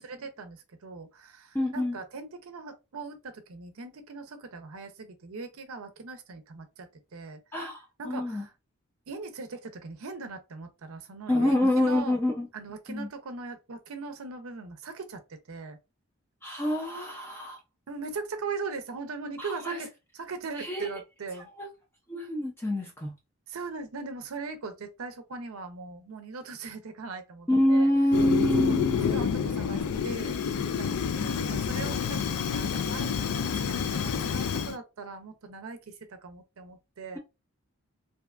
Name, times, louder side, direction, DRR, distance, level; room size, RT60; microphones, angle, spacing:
voice 1, 0.0-7.4 8.0-8.5 9.1-12.2 12.5-15.2 15.5-15.8 17.9-19.9 20.1-21.5 23.5-27.9 28.6-28.8 29.1-30.3 30.8-35.8 36.1-37.2, right 4 dB, 70° right, 0.5 m, -40 dB
voice 2, 1.5-2.0 7.5-8.5 11.3-12.5 12.9-13.1 16.4-17.6 19.4-19.8 20.6-20.9 21.6-21.7 22.1-23.1 27.5-29.1, left 1 dB, 10° left, 0.4 m, -26 dB
Fire, 28.1-34.7, left 7 dB, 80° left, 0.3 m, -28 dB
2.6 x 2.2 x 2.3 m
head